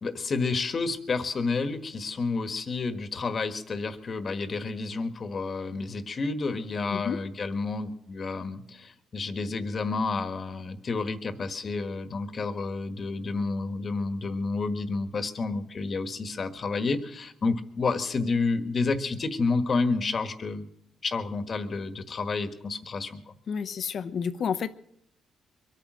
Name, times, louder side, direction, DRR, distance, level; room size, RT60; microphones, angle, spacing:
voice 1, 0.0-20.7 21.0-23.3, left 4 dB, 40° left, 10 dB, 1.4 m, -30 dB
voice 2, 23.5-24.8, left 7 dB, 55° left, 11 dB, 0.7 m, -30 dB
23.0 x 9.1 x 6.3 m, 0.73 s
cardioid pair, 90°, 0 cm